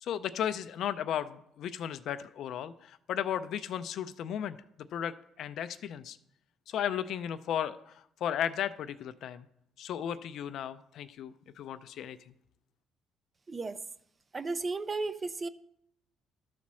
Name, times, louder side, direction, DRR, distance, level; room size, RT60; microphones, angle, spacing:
voice 1, 0.0-6.2 6.7-9.5 9.8-12.3, left 9 dB, 65° left, 13 dB, 0.4 m, -35 dB
voice 2, 14.3-15.5, right 3 dB, 25° right, 13 dB, 0.5 m, -34 dB
12.5 x 4.2 x 6.1 m, 0.75 s
cardioid pair, 125°, 0 cm